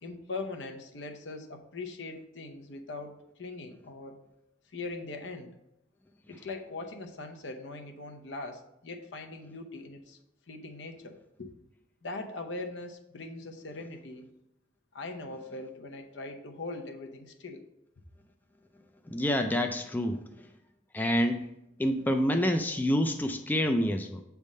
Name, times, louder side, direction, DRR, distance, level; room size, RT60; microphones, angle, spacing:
voice 1, 0.0-4.2 4.7-5.5 6.3-10.2 10.5-11.5 12.0-14.3 14.9-17.6, left 3 dB, 75° left, 4 dB, 0.8 m, -41 dB
voice 2, 19.1-20.2 20.9-21.4 21.8-24.2, equal, 10° left, 5 dB, 0.3 m, -27 dB
7.3 x 3.5 x 5.3 m, 0.82 s
head